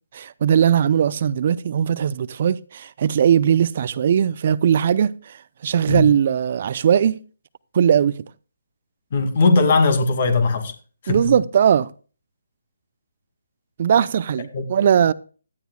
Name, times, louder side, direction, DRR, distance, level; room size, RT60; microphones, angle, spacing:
voice 1, 0.1-5.4 5.6-7.2 7.7-8.2 11.1-11.9 13.8-15.1, right 8 dB, 45° right, 0.6 m, -19 dB
voice 2, 9.1-10.7 11.0-11.2 14.5-14.6, left 3 dB, 45° left, 2.4 m, -18 dB
17.0 x 12.5 x 2.3 m
figure-of-eight pair, 145°, 0 cm